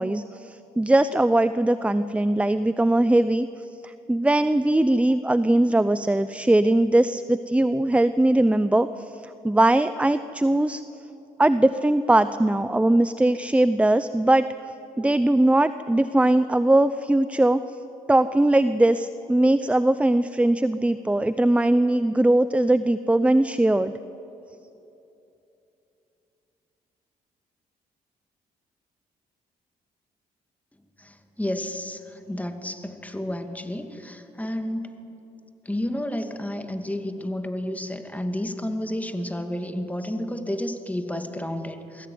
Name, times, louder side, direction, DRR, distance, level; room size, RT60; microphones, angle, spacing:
voice 1, 0.0-3.5 3.8-8.9 9.4-10.8 11.4-14.5 15.0-17.6 18.1-23.9, right 1 dB, 5° right, 13 dB, 0.7 m, -20 dB
voice 2, 31.0-34.9 35.7-42.1, left 1 dB, 10° left, 7 dB, 2.3 m, -31 dB
22.5 x 16.0 x 9.5 m, 2.9 s
supercardioid pair, 55°, 17 cm